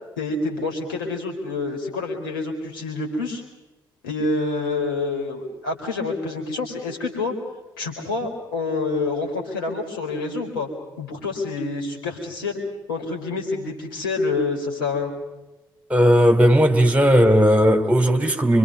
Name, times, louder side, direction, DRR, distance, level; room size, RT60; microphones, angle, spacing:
voice 1, 0.2-3.4 4.0-7.3 7.8-10.7 11.0-12.6 12.9-15.1, left 3 dB, 80° left, 4.3 m, -27 dB
voice 2, 15.9-18.6, equal, 15° right, 2.9 m, -16 dB
26.0 x 25.0 x 5.5 m
figure-of-eight pair, 45°, 11 cm